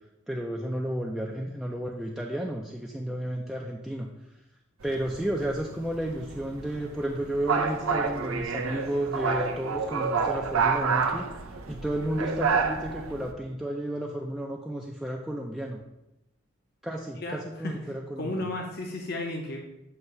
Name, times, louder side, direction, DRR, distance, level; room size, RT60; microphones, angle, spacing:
voice 1, 0.3-4.1 4.8-11.3 11.7-15.8 16.8-18.5, right 1 dB, ahead, -1 dB, 0.4 m, -32 dB
sound 1, 4.8-13.3, right 5 dB, 85° right, 0.6 m, -29 dB
voice 2, 17.2-17.8 18.2-19.6, left 2 dB, 50° left, 1 dB, 0.7 m, -33 dB
7.9 x 2.9 x 5.4 m, 0.89 s
head